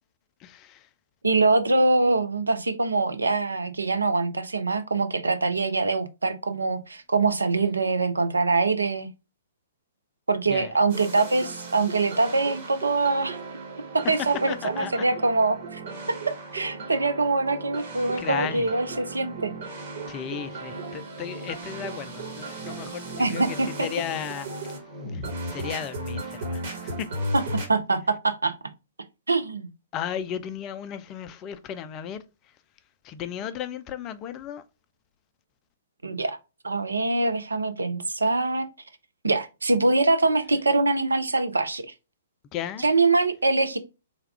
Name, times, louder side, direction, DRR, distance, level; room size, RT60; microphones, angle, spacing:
voice 1, 0.4-0.9 10.5-10.7 14.5-15.1 18.2-18.7 20.1-24.5 25.1-27.1 29.9-32.5 33.0-34.6 42.5-42.8, left 9 dB, 25° left, 0.3 m, -35 dB
voice 2, 1.2-9.1 10.3-13.4 13.9-16.2 16.5-19.5 23.2-23.9 27.3-27.4 27.7-28.5 29.3-29.7 36.0-36.4 36.6-38.7 39.2-41.8 42.8-43.8, right 3 dB, 75° right, 0.4 m, -24 dB
sound 1, 10.9-27.7, right 2 dB, 50° right, 1.3 m, -36 dB
3.4 x 2.3 x 3.3 m
figure-of-eight pair, 115°, 0 cm